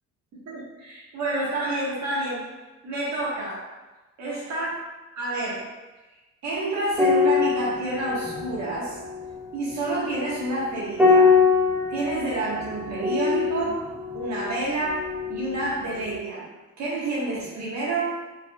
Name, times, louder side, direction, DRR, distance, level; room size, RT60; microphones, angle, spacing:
voice 1, 0.3-2.5 2.8-3.7 4.2-4.7 5.1-5.7 6.4-9.0 9.5-11.4 11.9-13.9 14.1-16.5 16.8-18.2, right 2 dB, 65° right, -7 dB, 1.4 m, -29 dB
sound 1, 6.9-15.7 15.9-16.2, left 5 dB, 5° right, 0.8 m, -24 dB
4.7 x 4.1 x 2.3 m, 1.1 s
cardioid pair, 90°, 30 cm